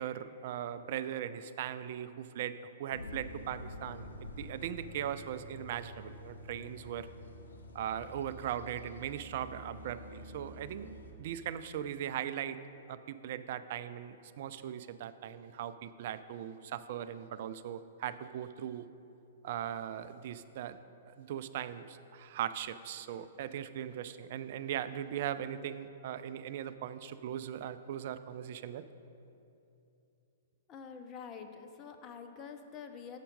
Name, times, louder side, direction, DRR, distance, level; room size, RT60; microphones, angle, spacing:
voice 1, 0.0-7.1 7.7-10.9 11.2-12.6 12.9-18.9 19.4-20.8 21.1-28.8, right 10 dB, 55° right, 13 dB, 0.3 m, -39 dB
sound 1, 2.9-11.1, left 1 dB, 75° left, 0.8 m, -48 dB
voice 2, 30.7-33.2, left 6 dB, 30° left, 6 dB, 0.6 m, -47 dB
7.2 x 5.6 x 5.2 m, 2.8 s
figure-of-eight pair, 115°, 0 cm